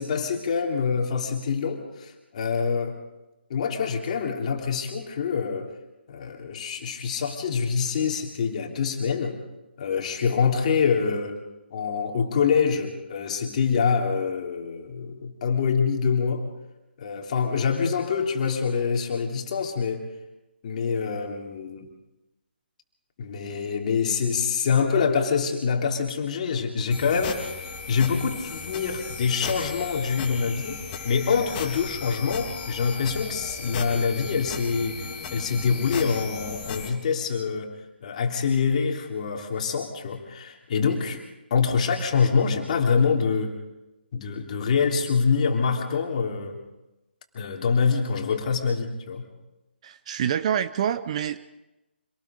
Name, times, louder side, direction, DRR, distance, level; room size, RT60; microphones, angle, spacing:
voice 1, 0.0-3.0 3.5-5.7 6.1-9.4 9.8-11.4 11.7-16.4 17.0-20.1 20.6-21.9 23.2-35.0 35.3-37.7 38.0-41.2 41.5-43.6 44.1-46.6 47.3-49.3, left 5 dB, 40° left, 2 dB, 3.2 m, -25 dB
sound 1, 26.9-36.9, left 5 dB, 25° left, 3.0 m, -36 dB
voice 2, 49.8-51.4, right 9 dB, 35° right, 13 dB, 0.7 m, -26 dB
26.5 x 19.0 x 5.2 m, 0.99 s
figure-of-eight pair, 145°, 6 cm